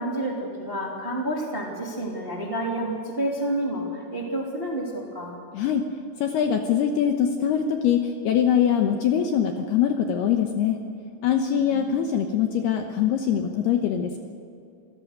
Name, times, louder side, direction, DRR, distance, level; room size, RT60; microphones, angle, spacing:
voice 1, 0.0-5.3 11.5-11.8, right 1 dB, 15° right, -2 dB, 2.1 m, -29 dB
voice 2, 5.5-5.9 6.2-10.8 11.2-14.2, left 8 dB, 70° left, 4 dB, 2.6 m, -23 dB
26.5 x 16.5 x 6.7 m, 2.6 s
omnidirectional pair, 5.6 m